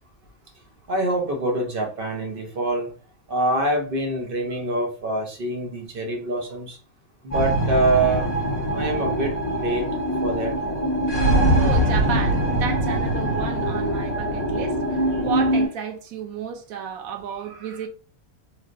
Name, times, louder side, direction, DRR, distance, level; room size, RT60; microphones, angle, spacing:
voice 1, 0.9-2.9 3.3-6.8 7.2-8.3 8.7-9.9 10.2-10.6, right 2 dB, 45° right, 0.9 m, -25 dB
sound 1, 7.3-15.7, right 1 dB, 35° left, 1.3 m, -22 dB
voice 2, 11.3-17.9, right 7 dB, 85° right, 1.1 m, -32 dB
3.2 x 2.7 x 2.5 m
omnidirectional pair, 1.4 m